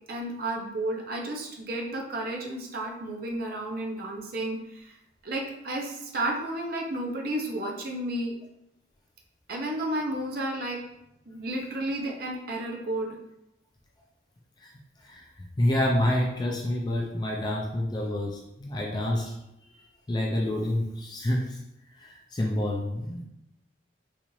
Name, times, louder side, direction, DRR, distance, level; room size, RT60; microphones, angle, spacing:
voice 1, 0.1-5.0 5.2-8.3 9.5-10.8 11.3-13.1, right 1 dB, 50° right, 0 dB, 0.6 m, -32 dB
voice 2, 15.0-19.3 19.7-19.8 20.1-21.6 21.9-23.2, left 1 dB, 20° left, -1 dB, 0.4 m, -28 dB
4.0 x 2.5 x 3.1 m, 0.84 s
head